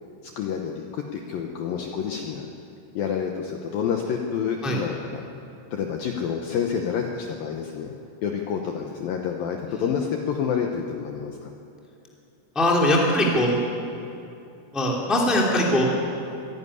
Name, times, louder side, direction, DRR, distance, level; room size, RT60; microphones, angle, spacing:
voice 1, 0.2-2.5 3.0-5.2 5.7-7.9 8.2-11.5, left 7 dB, 90° left, 2 dB, 2.0 m, -28 dB
voice 2, 12.5-13.6 14.7-15.8, left 1 dB, ahead, -2 dB, 1.4 m, -21 dB
25.0 x 11.0 x 9.9 m, 2.7 s
omnidirectional pair, 5.7 m